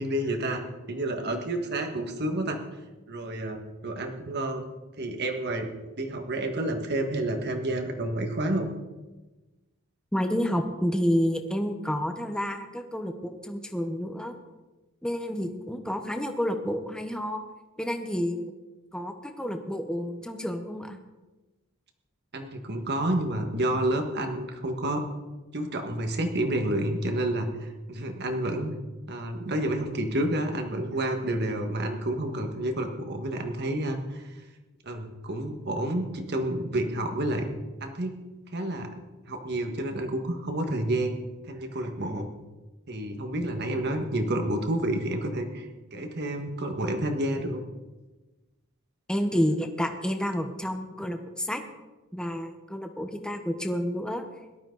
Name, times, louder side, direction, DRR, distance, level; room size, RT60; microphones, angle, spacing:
voice 1, 0.0-2.6 3.1-4.6 5.0-5.7 6.0-8.7 22.3-25.0 25.5-28.7 29.1-34.2 34.8-37.5 37.8-38.1 38.5-38.9 39.3-42.3 42.9-47.6, right 1 dB, 50° right, 5 dB, 1.7 m, -29 dB
voice 2, 10.1-14.4 15.0-17.4 17.8-18.5 18.9-21.0 49.1-51.6 52.1-54.2, equal, 5° left, 5 dB, 0.9 m, -29 dB
18.0 x 12.0 x 4.0 m, 1.1 s
head